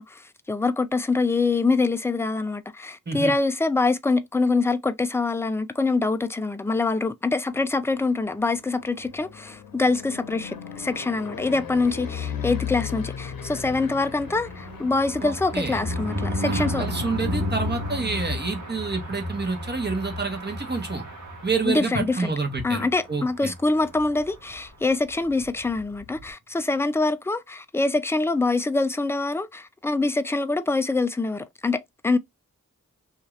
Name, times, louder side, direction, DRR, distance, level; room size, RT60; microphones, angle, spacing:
voice 1, 0.0-16.9 21.6-22.3 22.6-32.2, left 3 dB, 10° left, 0.4 m, -25 dB
sound 1, 7.7-21.7 22.1-22.6 22.8-22.9 23.2-26.3, left 8 dB, 90° left, 0.8 m, -39 dB
sound 2, 13.6-22.1 22.5-22.7 22.9-23.0 23.3-23.6, left 1 dB, 55° right, 1.2 m, -32 dB
voice 2, 15.2-15.8 16.4-21.0 21.4-23.5, right 4 dB, 30° right, 1.0 m, -28 dB
2.6 x 2.5 x 3.1 m
cardioid pair, 50°, 34 cm